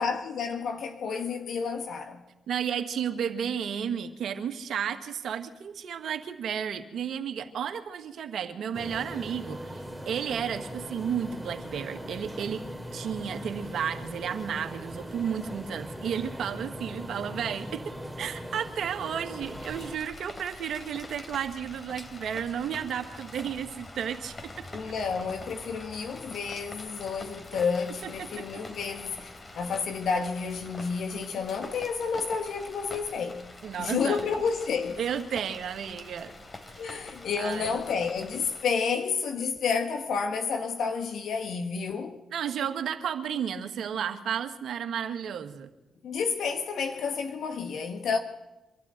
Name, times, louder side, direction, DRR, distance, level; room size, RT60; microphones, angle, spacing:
voice 1, 0.0-2.2 24.7-33.4 33.8-35.0 36.8-42.2 46.0-48.2, left 5 dB, 70° left, 1.5 m, -30 dB
voice 2, 2.5-12.7 12.9-24.7 28.0-28.4 33.6-34.2 35.0-36.3 36.7-36.9 37.4-37.8 42.3-45.7, right 8 dB, 70° right, 1.8 m, -33 dB
sound 1, 8.7-20.0, equal, 5° right, 2.8 m, -40 dB
Rain, 19.4-38.6, left 2 dB, 40° left, 3.4 m, -45 dB
25.0 x 12.5 x 8.9 m
hypercardioid pair, 45°, 0 cm